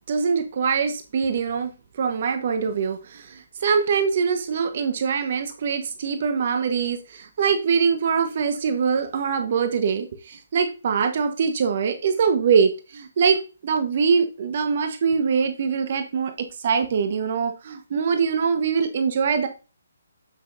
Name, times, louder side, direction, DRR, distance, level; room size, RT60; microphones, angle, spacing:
voice 1, 0.1-1.7 2.0-19.5, right 6 dB, 45° right, 7 dB, 1.1 m, -23 dB
8.1 x 8.0 x 2.6 m, 0.31 s
figure-of-eight pair, 145°, 0 cm